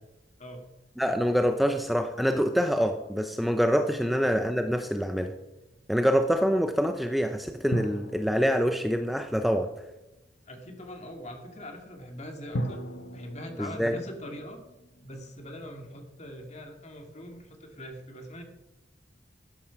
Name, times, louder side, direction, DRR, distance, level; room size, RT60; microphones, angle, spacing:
voice 1, 1.0-5.3 5.9-9.7 13.6-13.9, equal, ahead, 6 dB, 0.6 m, -25 dB
sound 1, 5.0-5.9 7.7-10.1 12.5-15.6, equal, 75° left, 1.2 m, -39 dB
voice 2, 10.5-12.8 13.1-14.6 15.0-18.4, equal, 40° left, 3 dB, 2.2 m, -42 dB
12.5 x 9.1 x 5.9 m, 1.0 s
head